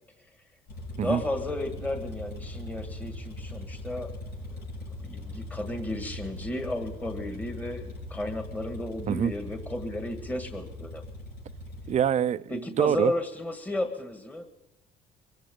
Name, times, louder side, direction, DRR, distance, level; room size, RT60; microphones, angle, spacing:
sound 1, 0.7-12.0, left 1 dB, 75° left, 7.3 m, -40 dB
voice 1, 1.0-4.1 5.0-11.0 12.5-14.5, left 1 dB, 10° left, 5 dB, 1.8 m, -33 dB
voice 2, 11.9-13.1, right 9 dB, 45° right, 15 dB, 0.6 m, -25 dB
24.0 x 14.5 x 3.8 m, 1.0 s
cardioid pair, 110°, 17 cm